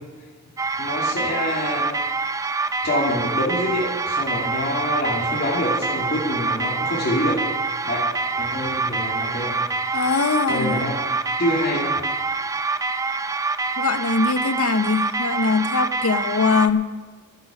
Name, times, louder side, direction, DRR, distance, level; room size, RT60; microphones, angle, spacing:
sound 1, 0.6-16.7, right 3 dB, 15° right, 0.4 m, -26 dB
voice 1, 0.8-1.9 2.8-7.4 7.8-8.1 8.3-9.6 9.8-10.9 11.4-12.0, left 1 dB, 50° left, -4 dB, 2.6 m, -26 dB
voice 2, 9.9-10.8 13.8-16.9, left 4 dB, 90° left, 11 dB, 0.7 m, -22 dB
12.5 x 11.0 x 6.1 m, 1.3 s
head